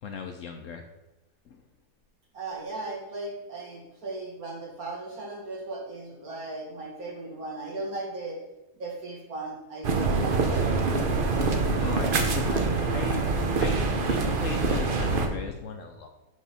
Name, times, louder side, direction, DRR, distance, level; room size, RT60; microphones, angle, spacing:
voice 1, 0.0-0.8 1.5-1.6 11.8-13.3 13.6-16.1, left 5 dB, 65° left, 5 dB, 0.9 m, -37 dB
voice 2, 2.3-8.4 8.7-10.7, right 2 dB, 65° right, -3 dB, 2.2 m, -37 dB
sound 1, 9.8-15.3, right 3 dB, 45° right, 0.7 m, -25 dB
11.0 x 3.6 x 4.2 m, 0.99 s
omnidirectional pair, 1.7 m